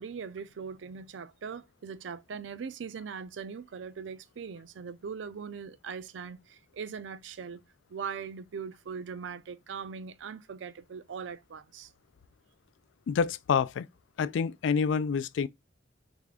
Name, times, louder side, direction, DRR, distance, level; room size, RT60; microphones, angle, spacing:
voice 1, 0.0-7.6 7.9-11.9, right 6 dB, 70° right, 0.4 m, -40 dB
voice 2, 13.1-13.9 14.2-15.5, left 6 dB, 70° left, 0.3 m, -27 dB
3.6 x 3.2 x 3.5 m
head